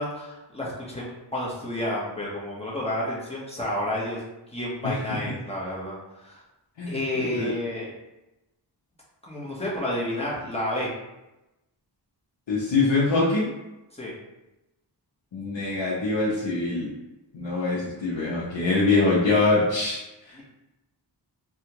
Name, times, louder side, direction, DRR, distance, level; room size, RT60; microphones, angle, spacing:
voice 1, 0.0-4.2 4.5-6.4 6.9-7.9 9.2-10.9 13.9-14.1 17.6-17.7 20.3-20.4, left 1 dB, 15° left, -6 dB, 1.1 m, -30 dB
voice 2, 12.5-13.5 15.3-16.9 17.3-20.0 20.3-20.4, left 3 dB, 90° left, -6 dB, 0.7 m, -23 dB
3.4 x 2.4 x 2.9 m, 0.98 s
wide cardioid pair, 75°, 44 cm